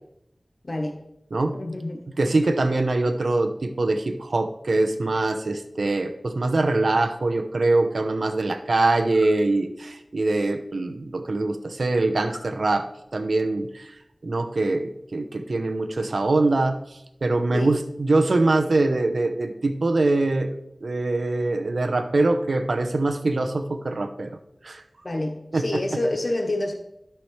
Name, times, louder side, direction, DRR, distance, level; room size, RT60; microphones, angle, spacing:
voice 1, 0.6-1.0 1.5-2.0 17.5-17.8 25.0-26.7, left 1 dB, 55° left, 4 dB, 0.9 m, -27 dB
voice 2, 2.2-12.9 13.1-13.9 14.2-20.5 20.8-24.3 24.6-24.8 25.5-25.8, right 2 dB, 90° right, 7 dB, 0.7 m, -23 dB
sound 1, 9.0-9.4 12.2-12.5, left 1 dB, 85° left, 3.4 m, -44 dB
12.0 x 5.8 x 3.2 m, 0.81 s
wide cardioid pair, 70°, 0 cm